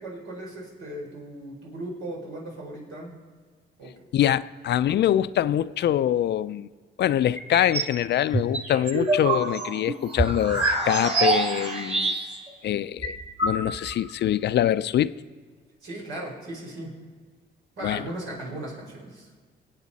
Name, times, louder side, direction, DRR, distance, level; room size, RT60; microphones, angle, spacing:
voice 1, 0.0-3.2 3.8-3.9 15.8-16.9 17.8-19.3, right 1 dB, 85° right, 4.6 m, -37 dB
voice 2, 4.1-6.7 7.0-12.1 12.6-13.2 13.4-15.1 17.8-18.0, left 11 dB, 60° left, 0.4 m, -24 dB
sound 1, 7.4-7.9 8.3-12.5 12.8-12.9 13.0-14.0, right 2 dB, 30° right, 2.6 m, -25 dB
24.5 x 8.6 x 4.1 m
cardioid pair, 90°, 20 cm